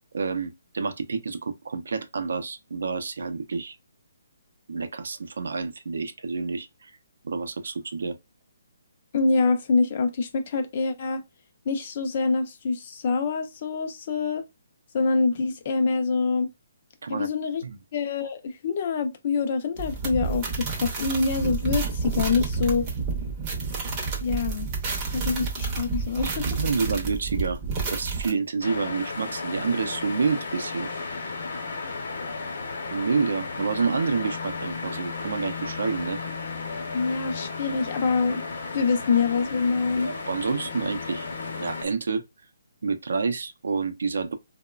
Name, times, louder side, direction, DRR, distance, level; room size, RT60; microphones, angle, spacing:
voice 1, 0.1-3.8 4.7-6.9 7.2-8.2 17.0-17.3 17.6-17.8 26.2-27.6 27.9-30.9 32.9-36.2 40.0-41.3 41.6-42.2 42.8-44.3, right 4 dB, 70° right, 0.5 m, -28 dB
voice 2, 9.1-11.2 11.7-14.4 14.9-16.5 17.1-17.6 17.9-22.9 24.2-24.7 25.1-26.5 36.9-38.4 38.7-40.1, left 4 dB, 35° left, 0.4 m, -25 dB
sound 1, 19.8-28.3, right 4 dB, 20° right, 0.6 m, -30 dB
sound 2, 28.6-41.9, left 4 dB, 50° left, 0.8 m, -34 dB
2.9 x 2.1 x 2.3 m
hypercardioid pair, 175°, 0 cm